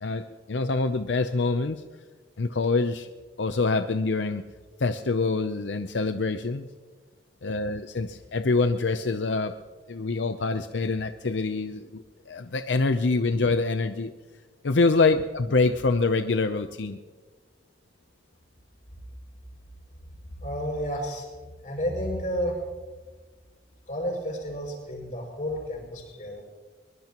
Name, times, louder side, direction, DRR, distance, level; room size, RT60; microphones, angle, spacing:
voice 1, 0.0-1.8 2.4-3.1 3.4-4.4 4.8-6.7 7.4-9.5 9.9-14.1 14.6-17.0, left 3 dB, 85° left, 9 dB, 0.6 m, -25 dB
voice 2, 20.4-21.3 21.6-22.7 23.9-26.4, equal, 45° left, 0 dB, 6.0 m, -31 dB
22.5 x 21.5 x 3.0 m, 1.4 s
head